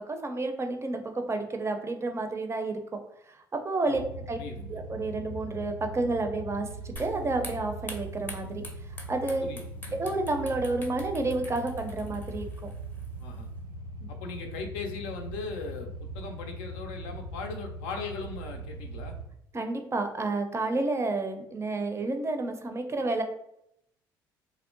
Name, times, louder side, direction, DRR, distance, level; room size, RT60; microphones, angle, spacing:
voice 1, 0.0-3.0 3.3-4.0 4.3-4.4 4.7-8.6 9.1-9.5 9.9-12.7 19.5-23.2, right 2 dB, 25° right, 5 dB, 0.5 m, -30 dB
sound 1, 3.9-19.2, right 1 dB, 90° right, 0.5 m, -40 dB
voice 2, 4.4-4.8 9.4-10.0 13.2-13.5 14.1-19.2, left 4 dB, 70° left, 4 dB, 0.4 m, -39 dB
sound 2, 7.0-13.5, left 1 dB, 15° left, 0.6 m, -47 dB
2.7 x 2.0 x 2.5 m, 0.77 s
hypercardioid pair, 50°, 11 cm